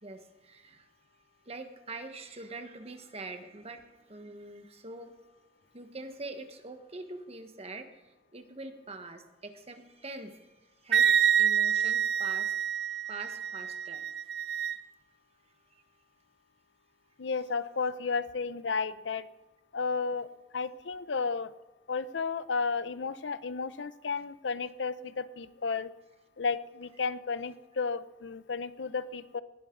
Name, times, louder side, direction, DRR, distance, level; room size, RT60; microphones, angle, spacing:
voice 1, 0.0-0.9 1.4-3.8 4.1-5.2 5.7-14.1, right 2 dB, 35° right, 7 dB, 1.4 m, -44 dB
Wind instrument woodwind instrument, 10.9-14.8, right 8 dB, 65° right, 0.5 m, -27 dB
voice 2, 17.2-19.3 19.7-20.3 20.5-21.5 21.9-25.9 26.4-29.4, left 4 dB, 90° left, 15 dB, 0.7 m, -33 dB
19.0 x 11.5 x 3.9 m, 1.1 s
head